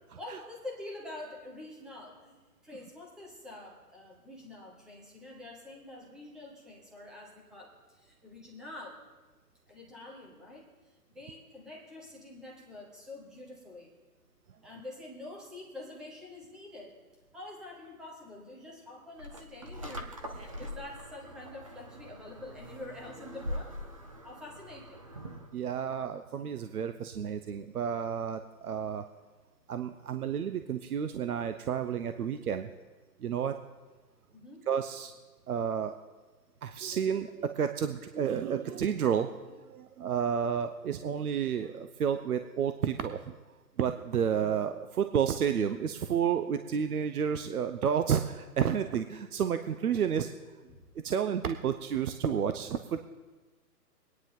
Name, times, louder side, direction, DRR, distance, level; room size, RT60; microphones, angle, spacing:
voice 1, 0.1-9.0 9.7-14.0 14.6-17.0 17.3-23.8 24.2-25.0 34.3-34.7 50.7-50.8, left 2 dB, ahead, -3 dB, 0.8 m, -46 dB
sound 1, 19.2-25.5, equal, 20° right, 0.5 m, -42 dB
voice 2, 25.5-29.1 29.7-32.7 33.2-33.6 34.7-35.1 35.5-36.0 36.6-39.3 39.6-43.3 43.8-50.3 51.0-53.0, right 8 dB, 65° right, 9 dB, 0.8 m, -31 dB
23.5 x 9.7 x 3.7 m, 1.3 s
hypercardioid pair, 150°, 49 cm